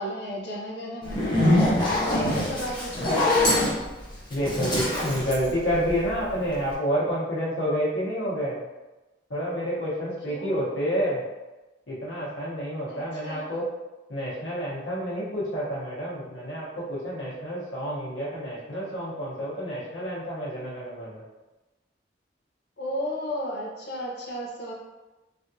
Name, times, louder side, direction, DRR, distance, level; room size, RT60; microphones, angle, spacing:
voice 1, 0.0-1.4 1.9-3.9 10.3-10.5 12.9-13.5 22.8-24.7, equal, 65° left, -3 dB, 0.7 m, -34 dB
Zipper (clothing), 1.0-6.3, left 1 dB, 25° left, 0.7 m, -24 dB
voice 2, 2.1-2.5 4.3-8.7 9.3-11.2 11.9-13.7 14.1-21.2, equal, 90° left, -7 dB, 1.1 m, -29 dB
3.2 x 2.5 x 2.7 m, 1.1 s
head